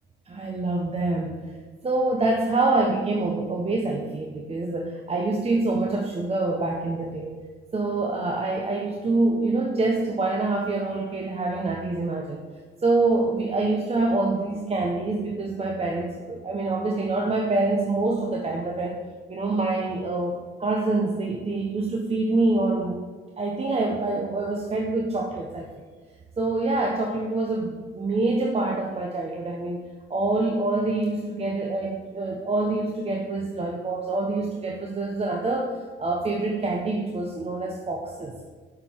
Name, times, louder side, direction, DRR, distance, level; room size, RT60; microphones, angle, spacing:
voice 1, 0.3-1.5 1.8-7.3 7.7-12.4 12.8-19.0 19.3-23.0 23.4-25.7 26.4-38.4, right 2 dB, 30° right, 0 dB, 0.9 m, -26 dB
7.7 x 4.6 x 6.0 m, 1.4 s
cardioid pair, 90°, 20 cm